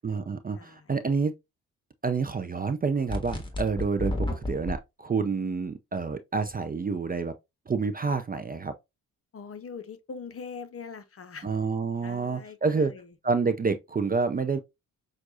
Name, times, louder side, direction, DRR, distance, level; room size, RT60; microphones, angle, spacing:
voice 1, 0.0-1.3 2.0-7.3 7.7-8.7 11.4-12.9 13.2-14.6, right 4 dB, 20° right, 0.5 m, -28 dB
voice 2, 0.6-0.9 9.3-11.5 12.0-13.1, left 5 dB, 35° left, 0.8 m, -42 dB
sound 1, 3.1-4.8, left 1 dB, 10° left, 1.6 m, -31 dB
5.9 x 2.5 x 2.7 m
hypercardioid pair, 45°, 40 cm